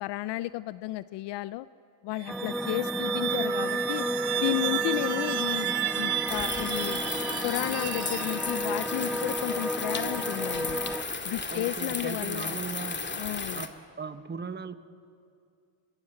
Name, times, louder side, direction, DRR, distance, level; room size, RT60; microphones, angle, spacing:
voice 1, 0.0-1.7 2.0-4.1 4.3-7.0 7.4-10.9 11.2-12.6 13.2-13.6, left 16 dB, 75° left, 16 dB, 0.6 m, -33 dB
sound 1, 2.1-8.8, right 12 dB, 65° right, 1.4 m, -32 dB
sound 2, 2.3-11.0, equal, ahead, 0.6 m, -33 dB
sound 3, 6.3-13.7, left 4 dB, 25° left, 2.2 m, -34 dB
voice 2, 11.5-13.0 13.5-14.7, right 5 dB, 25° right, 10 dB, 1.4 m, -38 dB
26.5 x 21.5 x 8.0 m, 2.4 s
supercardioid pair, 70°, 42 cm